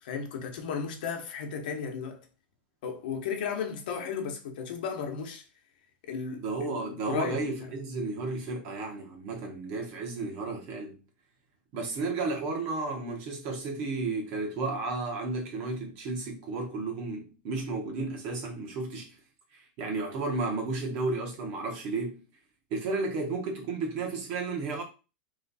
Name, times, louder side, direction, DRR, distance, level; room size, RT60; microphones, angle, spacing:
voice 1, 0.0-2.2 2.8-5.4 6.0-7.7, left 6 dB, 65° left, 1.0 m, -35 dB
voice 2, 6.4-11.0 11.7-19.1 19.5-22.2 22.7-24.8, right 3 dB, 35° right, 1.2 m, -33 dB
3.2 x 3.1 x 4.0 m
supercardioid pair, 175°, 5 cm